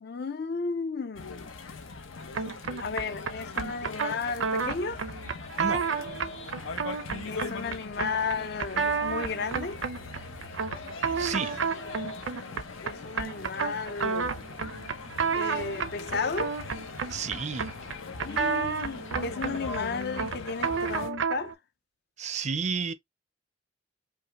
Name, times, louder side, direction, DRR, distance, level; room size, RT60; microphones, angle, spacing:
voice 1, 0.0-1.4 2.8-5.0 7.2-9.8 12.8-14.4 15.3-16.6 18.2-21.5, left 4 dB, 55° left, 0.5 m, -33 dB
sound 1, 1.1-21.1, left 3 dB, 90° left, 0.9 m, -41 dB
sound 2, 2.3-21.5, right 5 dB, 80° right, 0.6 m, -32 dB
voice 2, 11.2-11.6 17.1-17.7 22.2-22.9, right 5 dB, 35° right, 0.4 m, -31 dB
5.3 x 2.2 x 2.9 m
head